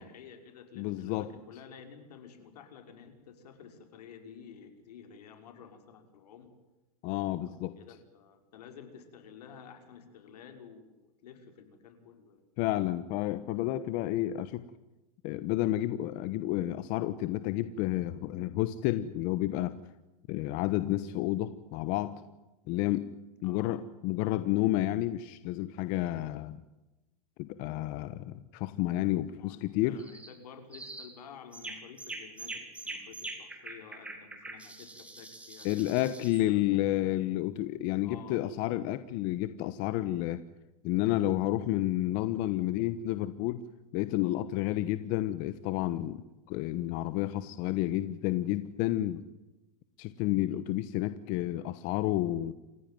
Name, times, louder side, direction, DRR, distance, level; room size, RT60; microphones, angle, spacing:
voice 1, 0.0-6.5 7.4-12.4 23.4-23.9 24.2-24.4 29.4-32.6 32.8-36.1 36.4-36.6 37.0-37.2 38.0-38.4, left 7 dB, 75° left, 7 dB, 5.9 m, -51 dB
voice 2, 0.8-1.3 7.0-7.7 12.6-14.6 15.2-19.7 20.3-22.2 22.7-23.1 23.4-26.6 27.4-30.0 35.6-40.4 40.8-43.7 43.9-46.2 46.5-49.2 50.0-52.5, left 15 dB, 40° left, 13 dB, 1.2 m, -30 dB
sound 1, 30.0-30.3 30.7-31.1 31.5-36.5, right 2 dB, 5° right, 3.4 m, -43 dB
28.5 x 16.0 x 9.3 m, 1.0 s
supercardioid pair, 150°, 20 cm